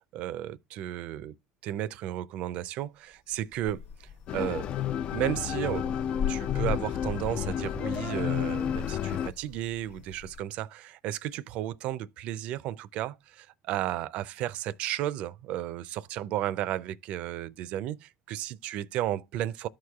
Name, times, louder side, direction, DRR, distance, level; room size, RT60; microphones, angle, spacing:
voice 1, 0.1-1.4 1.6-4.7 5.1-5.9 6.3-19.7, right 13 dB, 65° right, 0.4 m, -33 dB
sound 1, 3.1-10.4, left 8 dB, 70° left, 0.9 m, -40 dB
sound 2, 4.3-9.3, left 9 dB, 50° left, 0.3 m, -31 dB
13.5 x 4.8 x 2.3 m
supercardioid pair, 85°, 2 cm